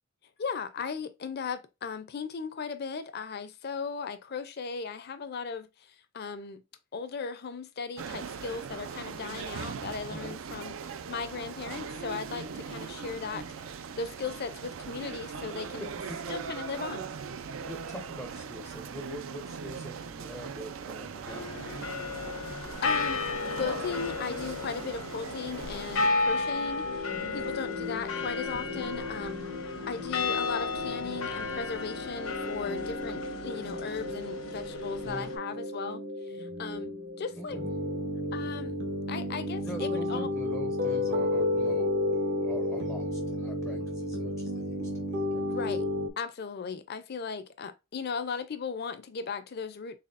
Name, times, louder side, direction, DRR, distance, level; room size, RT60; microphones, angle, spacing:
voice 1, 0.4-6.6 6.9-10.8 11.1-13.4 14.0-15.9 16.3-17.1 22.8-23.2 23.5-26.9 27.3-29.5 29.9-36.0 36.3-37.6 38.3-38.8 39.1-40.3 45.5-45.8 46.2-50.0, left 5 dB, 50° left, 0.5 m, -37 dB
sound 1, 8.0-26.1, right 6 dB, 70° right, 0.4 m, -40 dB
voice 2, 15.8-16.4 17.7-21.8 27.2-27.4 35.0-35.3 37.4-37.7 39.6-45.5, equal, ahead, 0.5 m, -43 dB
sound 2, 21.3-35.4, left 3 dB, 90° left, 1.0 m, -34 dB
sound 3, 26.8-46.1, left 1 dB, 55° right, 0.8 m, -33 dB
4.1 x 3.5 x 2.4 m
head